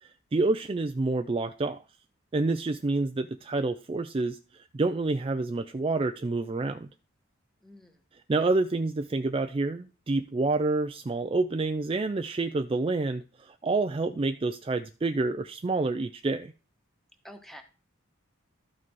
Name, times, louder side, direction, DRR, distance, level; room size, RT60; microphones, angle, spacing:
voice 1, 0.0-1.8 2.3-6.9 8.3-16.5, right 3 dB, 25° right, 8 dB, 0.4 m, -28 dB
voice 2, 7.6-8.0 17.2-17.6, equal, ahead, 5 dB, 1.3 m, -47 dB
13.0 x 5.9 x 4.6 m, 0.35 s
head